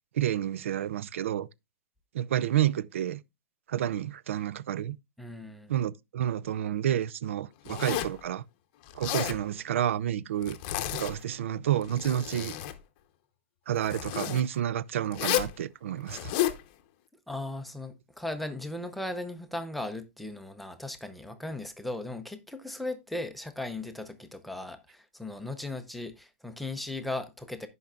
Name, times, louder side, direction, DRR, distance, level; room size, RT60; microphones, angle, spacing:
voice 1, 0.1-1.5 2.1-3.2 3.7-5.0 5.7-8.4 8.9-10.6 10.9-12.6 13.7-16.3, right 11 dB, 75° right, 0.4 m, -29 dB
voice 2, 5.2-5.7 17.3-27.7, left 2 dB, ahead, 0.6 m, -37 dB
Zipper (clothing), 7.6-8.2 8.9-9.4 10.4-11.3 11.8-12.8 13.8-14.4 15.1-15.5 16.1-16.6, left 13 dB, 35° left, 0.8 m, -31 dB
16.0 x 5.4 x 2.4 m
supercardioid pair, 165°, 7 cm